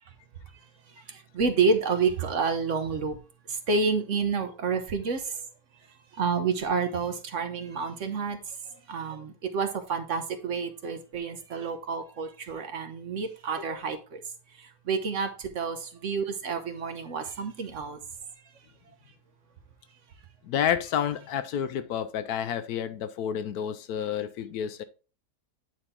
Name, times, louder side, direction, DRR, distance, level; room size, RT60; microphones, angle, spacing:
voice 1, 1.1-3.2 3.5-5.3 6.2-8.4 8.9-14.2 14.9-18.0, right 5 dB, 55° right, 1.1 m, -29 dB
voice 2, 20.4-24.8, left 9 dB, 70° left, 1.1 m, -30 dB
9.0 x 4.3 x 3.6 m
omnidirectional pair, 1.8 m